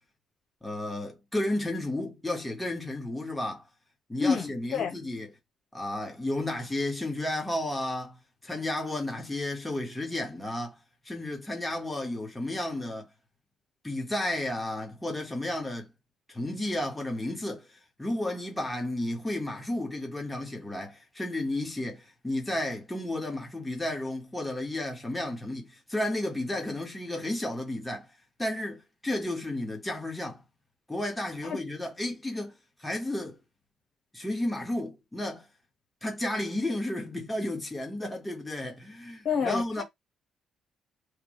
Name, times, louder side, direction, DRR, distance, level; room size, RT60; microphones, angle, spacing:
voice 1, 0.6-3.7 4.1-5.3 5.7-10.7 11.0-13.1 13.8-15.9 16.3-28.1 28.4-30.4 30.9-33.4 34.1-35.5 36.0-39.8, left 1 dB, 10° left, 1.7 m, -32 dB
voice 2, 4.2-5.0 31.4-31.6 39.2-39.8, left 6 dB, 60° left, 1.5 m, -28 dB
3.5 x 2.5 x 3.3 m
hypercardioid pair, 55°, 0 cm